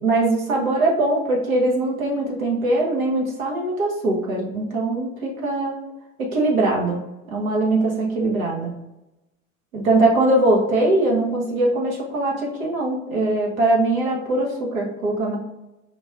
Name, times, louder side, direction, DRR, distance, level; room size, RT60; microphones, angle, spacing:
voice 1, 0.0-5.8 6.2-7.0 7.3-8.7 9.7-15.4, right 2 dB, 85° right, -2 dB, 1.0 m, -21 dB
4.3 x 3.0 x 2.3 m, 0.97 s
figure-of-eight pair, 75°, 40 cm